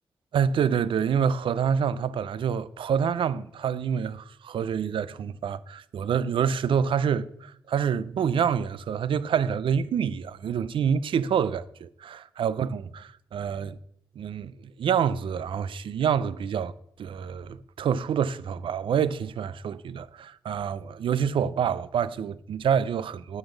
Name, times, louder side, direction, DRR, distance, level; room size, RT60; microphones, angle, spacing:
voice 1, 0.3-13.8 14.2-14.5 14.8-16.7 17.0-23.4, right 7 dB, 80° right, 0.4 m, -27 dB
10.0 x 4.0 x 7.1 m
cardioid pair, 80°, 9 cm